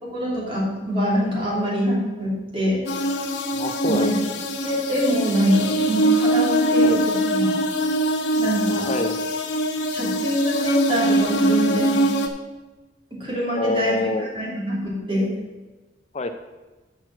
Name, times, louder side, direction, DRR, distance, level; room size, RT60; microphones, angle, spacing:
voice 1, 0.0-2.8 3.9-4.2 4.6-7.5 8.4-8.9 9.9-12.1 13.1-15.3, equal, 30° right, -4 dB, 3.0 m, -24 dB
sound 1, 2.9-12.3, right 1 dB, 80° left, 1.0 m, -22 dB
voice 2, 3.5-4.4 6.8-7.0 8.9-9.3 13.6-14.3 16.1-16.3, left 2 dB, 35° left, 7 dB, 0.5 m, -26 dB
6.6 x 6.0 x 7.5 m, 1.2 s
head